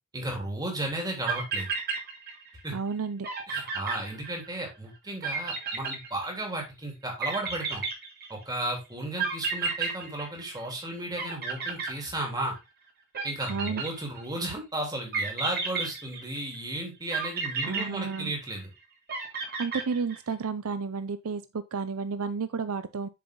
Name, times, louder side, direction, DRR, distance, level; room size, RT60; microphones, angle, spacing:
voice 1, 0.1-1.7 2.6-2.7 3.5-7.8 8.3-12.6 13.2-18.7, right 1 dB, 20° right, 3.4 m, -34 dB
sound 1, 1.3-2.6 2.9-3.0 3.2-4.7 5.2-6.6 7.2-8.5 9.2-10.9 11.2-12.6 13.1-14.4 15.1-16.5 17.1-18.6 19.1-20.3, right 5 dB, 45° right, 3.1 m, -32 dB
voice 2, 2.7-3.3 13.5-13.8 17.6-18.3 19.3-23.1, right 5 dB, 70° right, 0.6 m, -32 dB
7.7 x 6.9 x 3.8 m
head